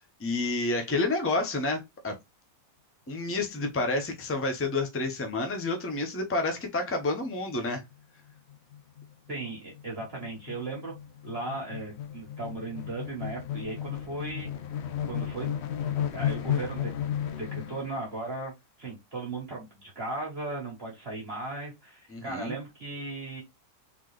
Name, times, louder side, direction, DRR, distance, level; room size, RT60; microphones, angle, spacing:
voice 1, 0.2-2.1 3.1-7.8 22.1-22.6, left 2 dB, 20° left, 0.4 m, -29 dB
sound 1, 7.3-7.6 7.9-8.0 8.3-18.0, left 10 dB, 85° left, 0.5 m, -34 dB
voice 2, 9.3-10.9 11.2-14.5 15.1-15.6 16.1-18.5 18.8-23.4, right 2 dB, 35° right, 1.6 m, -37 dB
4.0 x 3.6 x 3.2 m
omnidirectional pair, 1.9 m